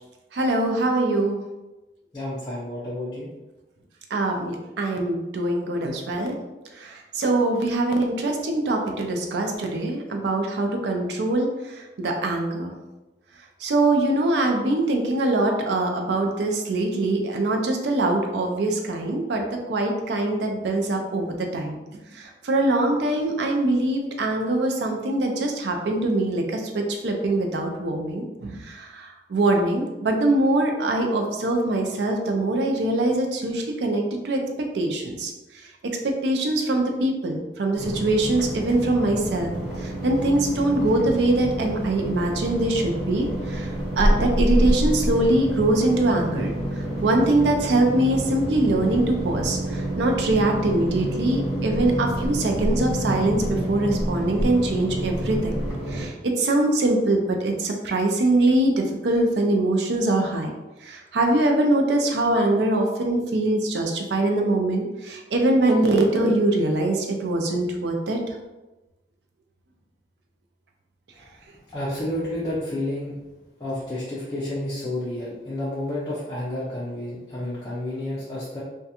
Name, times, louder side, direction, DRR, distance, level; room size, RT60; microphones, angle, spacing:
voice 1, 0.3-1.4 4.1-6.4 6.8-12.7 13.6-34.4 34.7-35.3 36.2-39.5 39.8-43.7 44.0-46.5 47.0-55.5 55.9-60.5 60.8-68.4, right 2 dB, 75° right, 3 dB, 0.4 m, -23 dB
voice 2, 2.1-3.3 71.2-71.3 71.7-73.2 73.6-78.6, left 1 dB, 25° left, -8 dB, 0.5 m, -30 dB
sound 1, 37.7-56.1, right 1 dB, ahead, 1.2 m, -27 dB
2.4 x 2.2 x 2.8 m, 1.1 s
head